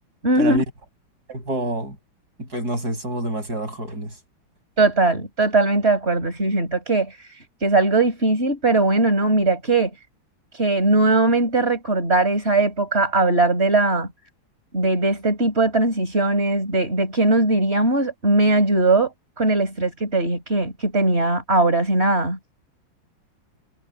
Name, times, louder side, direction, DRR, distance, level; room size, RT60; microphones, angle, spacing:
voice 1, 0.2-0.6 4.8-9.9 10.5-14.1 14.7-19.1 19.4-22.4, right 2 dB, 30° right, 5.3 m, -20 dB
voice 2, 1.3-2.0 2.4-4.1, right 1 dB, 45° right, 8.6 m, -27 dB
omnidirectional pair, 2.2 m